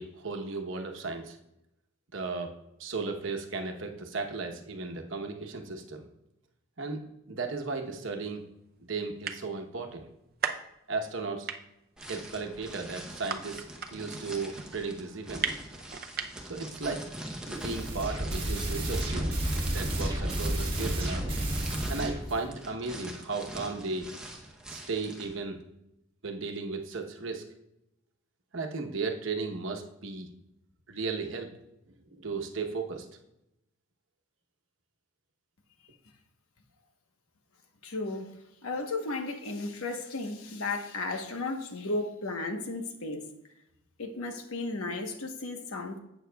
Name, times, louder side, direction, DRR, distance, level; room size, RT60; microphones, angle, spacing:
voice 1, 0.0-1.4 2.1-2.5 2.8-6.1 6.8-8.4 8.8-10.1 10.9-11.5 12.1-15.6 16.4-17.1 17.5-19.3 19.6-21.3 21.9-24.1 24.7-25.6 26.2-27.4 28.5-30.3 30.9-31.6 32.1-33.1, right 4 dB, 65° right, 4 dB, 1.0 m, -35 dB
sound 1, 7.7-7.8 8.5-8.6 8.8-8.9 9.1-9.7 10.1-11.2 11.5-16.6, right 7 dB, 45° right, 0.5 m, -35 dB
sound 2, 12.0-25.3, right 1 dB, 5° right, 0.8 m, -42 dB
sound 3, 17.6-22.4, right 1 dB, 25° right, 1.3 m, -31 dB
voice 2, 37.8-38.3 38.6-43.2 44.0-46.0, left 2 dB, 85° left, 5 dB, 1.1 m, -34 dB
11.5 x 8.1 x 2.3 m, 0.85 s
head